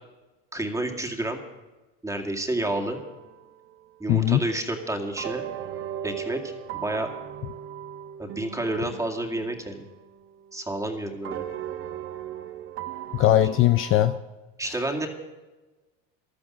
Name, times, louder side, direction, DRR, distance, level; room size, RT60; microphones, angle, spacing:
voice 1, 0.5-1.4 2.0-3.0 4.0-5.4 6.0-7.1 8.2-9.9 10.5-11.5 14.6-15.1, right 1 dB, 10° right, 3 dB, 2.2 m, -29 dB
sound 1, 2.6-4.0 5.2-10.9 11.2-14.2, right 10 dB, 45° right, 1.0 m, -38 dB
voice 2, 4.1-4.4 13.2-14.1, left 13 dB, 45° left, 10 dB, 0.6 m, -19 dB
14.5 x 12.0 x 6.2 m, 1.2 s
supercardioid pair, 100°, 31 cm